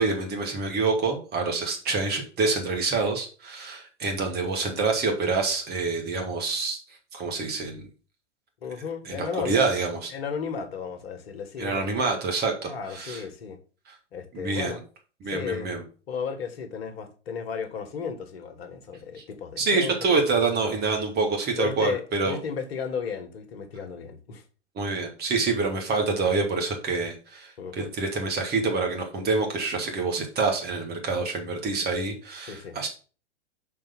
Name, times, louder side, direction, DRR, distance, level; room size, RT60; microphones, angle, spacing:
voice 1, 0.0-6.8 7.1-7.9 9.1-10.1 11.6-13.2 14.3-14.8 15.2-15.8 19.2-19.3 19.6-22.4 24.8-32.9, right 4 dB, 25° right, 2.3 m, -27 dB
voice 2, 8.6-9.7 10.1-11.9 12.7-13.6 14.1-14.8 15.3-15.7 16.1-19.9 21.5-24.4 27.6-27.9 32.5-32.8, left 6 dB, 60° left, 1.6 m, -34 dB
5.9 x 4.6 x 6.0 m
figure-of-eight pair, 105°, 35 cm